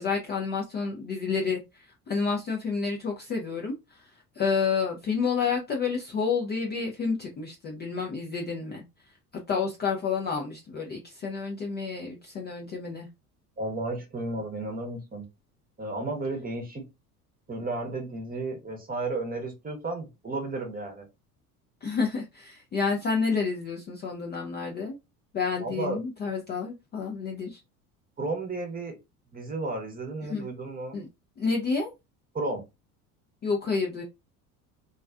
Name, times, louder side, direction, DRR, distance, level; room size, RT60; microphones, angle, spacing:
voice 1, 0.0-3.7 4.4-8.8 9.5-13.1 21.8-25.0 25.3-27.6 30.3-30.5 30.9-31.1 31.4-31.9 33.4-34.0, left 5 dB, 25° left, 0 dB, 0.4 m, -29 dB
voice 2, 13.6-15.3 15.8-16.8 17.5-21.1 25.6-26.0 28.2-28.9 29.3-31.0 32.3-32.6, right 2 dB, 20° right, 4 dB, 0.8 m, -33 dB
2.4 x 2.3 x 2.3 m, 0.24 s
hypercardioid pair, 70°, 46 cm